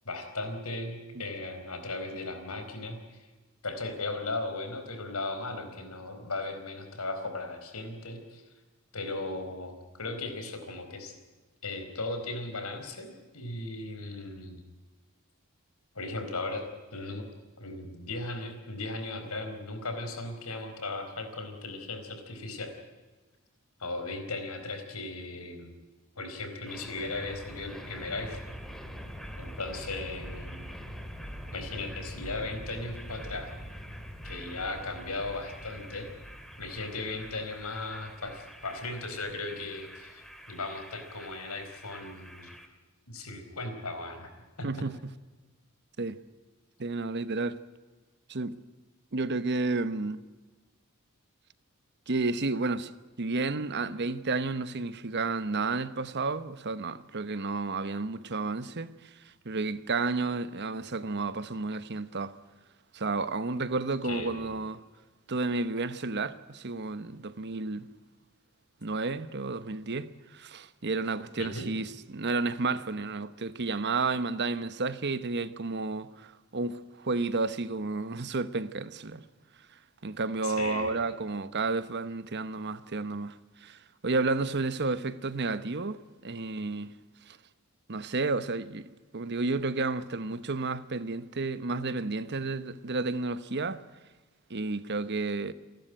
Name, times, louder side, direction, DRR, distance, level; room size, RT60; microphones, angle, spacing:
voice 1, 0.0-3.3 3.6-8.4 8.9-11.1 11.6-14.6 15.9-16.6 16.9-17.3 17.6-22.8 23.8-25.7 26.2-28.5 29.4-30.7 31.5-33.5 34.2-36.1 36.6-42.5 43.1-44.3 44.6-44.9 64.0-64.5 71.3-71.7 80.4-81.0, left 2 dB, 85° left, 4.5 m, -37 dB
sound 1, 26.7-42.7, equal, ahead, 2.1 m, -44 dB
voice 2, 46.8-47.6 48.3-48.6 49.1-50.3 52.1-52.9 53.2-58.9 59.4-62.4 62.9-64.8 65.3-67.9 68.8-79.2 80.0-83.3 83.6-86.9 87.3-87.4 87.9-93.8 94.5-95.5, right 3 dB, 50° right, 1.0 m, -31 dB
28.5 x 12.0 x 9.1 m
head